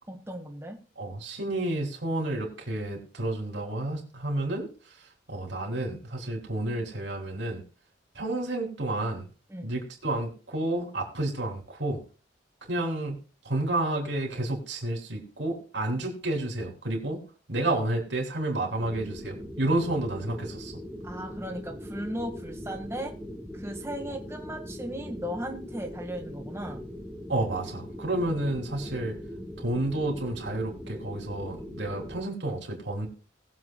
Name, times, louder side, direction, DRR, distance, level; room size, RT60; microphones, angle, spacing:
voice 1, 0.1-0.8 9.5-9.7 21.0-23.1 23.5-26.8, equal, 15° right, 1 dB, 1.7 m, -36 dB
voice 2, 1.0-7.6 8.1-9.3 9.6-12.0 12.7-13.2 13.4-17.2 17.5-20.7 27.3-29.1 29.6-33.1, right 1 dB, 65° right, 1 dB, 3.2 m, -30 dB
sound 1, 18.8-32.2, equal, 5° left, 1.3 m, -41 dB
20.0 x 7.5 x 2.3 m, 0.37 s
head